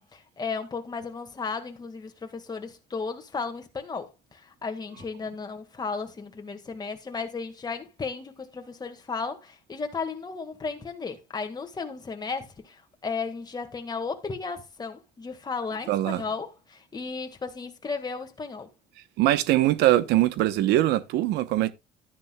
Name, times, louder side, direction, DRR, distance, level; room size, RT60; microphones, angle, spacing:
voice 1, 0.0-18.7, left 4 dB, 25° left, 1.8 m, -34 dB
voice 2, 15.9-16.2 19.2-21.7, right 14 dB, 85° right, 0.9 m, -22 dB
12.0 x 9.9 x 2.3 m
cardioid pair, 110°, 17 cm